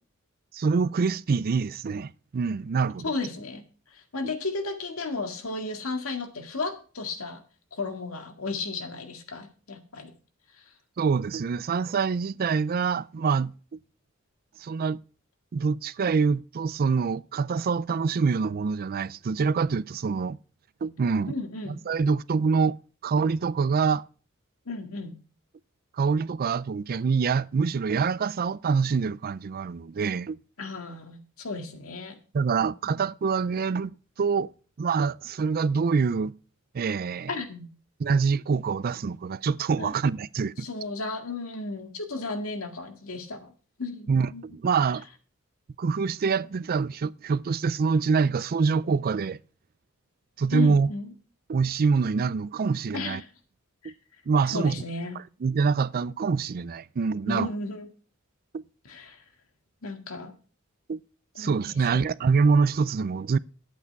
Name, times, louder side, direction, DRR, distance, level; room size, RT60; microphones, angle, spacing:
voice 1, 0.5-3.1 11.0-13.5 14.6-15.0 15.5-20.4 20.8-21.4 21.7-22.8 23.0-24.0 26.0-30.4 32.3-34.5 34.8-36.3 36.7-37.3 38.0-40.7 44.1-45.0 45.8-49.4 50.4-50.9 51.5-53.2 53.8-53.9 54.3-54.8 55.4-57.5 58.5-58.6 60.9-61.0 61.4-63.4, right 5 dB, 45° right, 0.4 m, -25 dB
voice 2, 3.0-3.6 3.9-7.4 7.7-10.1 10.6-10.7 21.3-21.8 24.7-25.2 30.6-32.2 32.6-33.0 37.3-37.7 39.8-39.9 40.6-43.5 43.8-44.4 50.5-51.1 52.9-53.3 53.8-53.9 54.5-55.2 57.3-57.9 58.9-59.2 59.8-60.4 61.4-62.1, left 3 dB, 85° left, 1.9 m, -34 dB
10.5 x 8.3 x 4.6 m
head